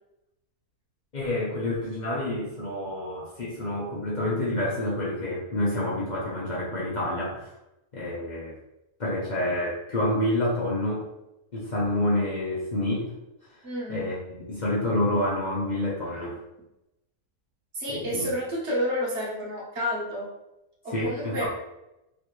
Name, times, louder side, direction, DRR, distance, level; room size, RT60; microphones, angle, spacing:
voice 1, 1.1-7.5 7.9-8.6 9.0-11.1 11.5-13.1 13.9-14.2 14.5-16.4 17.9-18.3 20.9-21.5, left 1 dB, 45° left, -6 dB, 0.6 m, -28 dB
voice 2, 13.6-14.1 16.1-16.3 17.7-20.3 20.8-21.5, equal, 50° right, -4 dB, 1.2 m, -30 dB
3.2 x 2.6 x 3.0 m, 0.91 s
omnidirectional pair, 1.7 m